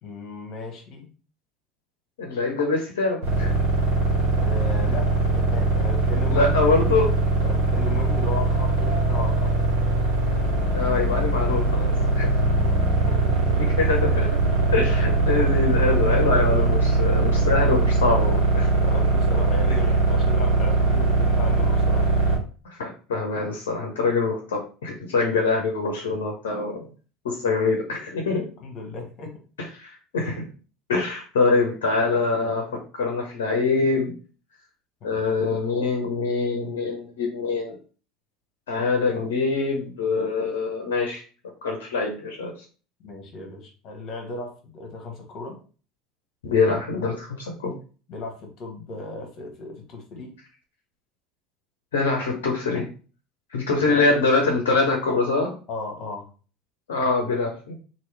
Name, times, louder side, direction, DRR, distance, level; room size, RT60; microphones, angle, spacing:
voice 1, 0.0-1.1 4.4-6.6 7.4-9.5 12.3-13.7 18.8-22.1 28.6-29.4 35.0-35.2 43.0-45.6 48.1-50.4 55.7-56.3, left 2 dB, 50° left, 1 dB, 1.1 m, -36 dB
voice 2, 2.2-3.6 6.3-7.1 10.7-12.3 13.6-14.4 14.7-18.7 20.9-21.3 22.6-26.9 27.2-28.4 29.8-30.4 30.9-32.7 32.9-34.1 35.0-37.8 38.7-41.2 41.6-42.5 46.4-47.7 51.9-52.8 53.5-55.5 56.9-57.8, left 3 dB, 75° left, 0 dB, 0.7 m, -24 dB
sound 1, 3.2-22.4, right 3 dB, 75° right, 1.2 m, -21 dB
3.0 x 2.6 x 3.2 m, 0.38 s
hypercardioid pair, 70°, 0 cm